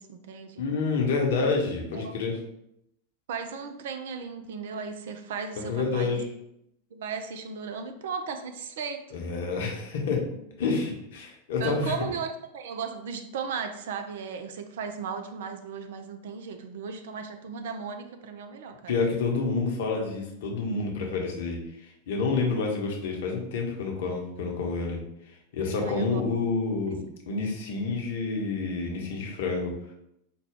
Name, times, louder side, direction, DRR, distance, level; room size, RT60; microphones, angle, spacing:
voice 1, 0.0-0.6 1.9-2.2 3.3-6.2 6.9-9.0 10.3-10.5 11.6-18.9 25.8-26.2, right 5 dB, 55° right, 7 dB, 0.4 m, -36 dB
voice 2, 0.6-2.4 5.7-6.2 9.1-10.2 10.6-11.9 18.9-21.6 22.1-25.0 25.5-29.7, left 4 dB, 55° left, 1 dB, 0.9 m, -28 dB
4.8 x 2.2 x 3.5 m, 0.78 s
figure-of-eight pair, 90°, 0 cm